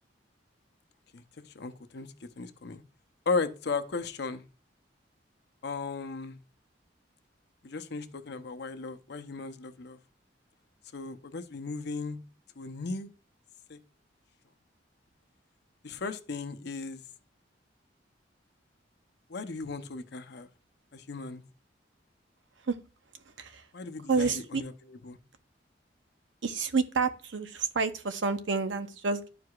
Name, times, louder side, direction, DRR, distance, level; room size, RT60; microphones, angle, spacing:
voice 1, 1.5-2.1 2.4-2.8 3.3-4.4 5.6-6.4 7.6-10.0 10.9-12.2 12.6-13.1 13.7-13.8 15.8-17.0 19.3-20.5 20.9-21.4 23.7-25.2, left 4 dB, 65° left, 0.7 m, -36 dB
voice 2, 24.1-24.6 26.4-29.3, right 4 dB, 85° right, 0.8 m, -29 dB
11.5 x 4.7 x 2.4 m
head